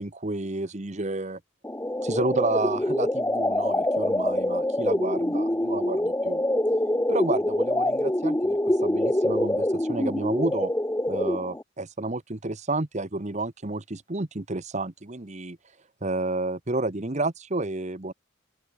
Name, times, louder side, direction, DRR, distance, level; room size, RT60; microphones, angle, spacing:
voice 1, 0.0-1.4 2.0-6.4 7.1-10.7 11.1-15.6 16.0-18.1, right 2 dB, 35° right, 1.2 m, -30 dB
sound 1, 1.6-11.6, left 1 dB, 10° left, 0.7 m, -25 dB
open air
head